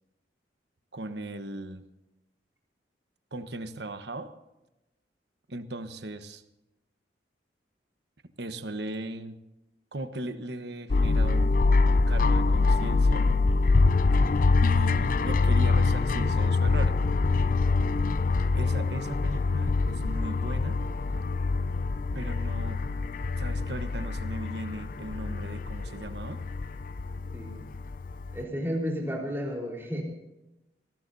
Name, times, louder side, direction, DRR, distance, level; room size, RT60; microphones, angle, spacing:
voice 1, 0.9-1.8 3.3-4.3 5.5-6.4 8.4-9.4 9.9-11.5 11.9-13.3 14.6-16.9 18.5-20.8 22.1-22.8 23.4-26.4, right 1 dB, 65° right, 9 dB, 1.2 m, -37 dB
sound 1, 10.9-28.4, left 3 dB, 50° left, 0.5 m, -25 dB
voice 2, 27.3-27.7 28.3-30.0, equal, 15° right, -1 dB, 4.2 m, -32 dB
26.0 x 19.5 x 2.8 m, 0.98 s
head